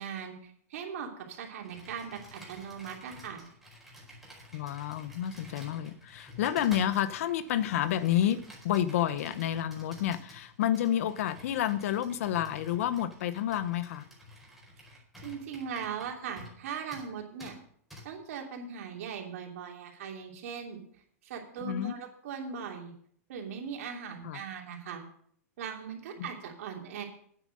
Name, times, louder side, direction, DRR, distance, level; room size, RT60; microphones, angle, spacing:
voice 1, 0.0-3.4 15.2-17.5 18.0-20.8 21.2-22.9 23.3-25.0 25.6-27.0, right 6 dB, 70° right, 2 dB, 3.0 m, -39 dB
Computer keyboard, 1.6-16.6 16.9-17.1 17.4-17.5 17.9-18.0, left 1 dB, ahead, 4.7 m, -51 dB
voice 2, 4.5-8.4 8.6-14.1 21.6-21.9 24.2-24.4 26.2-26.3, left 11 dB, 65° left, 14 dB, 0.9 m, -29 dB
9.4 x 9.1 x 6.5 m, 0.63 s
hypercardioid pair, 135°, 8 cm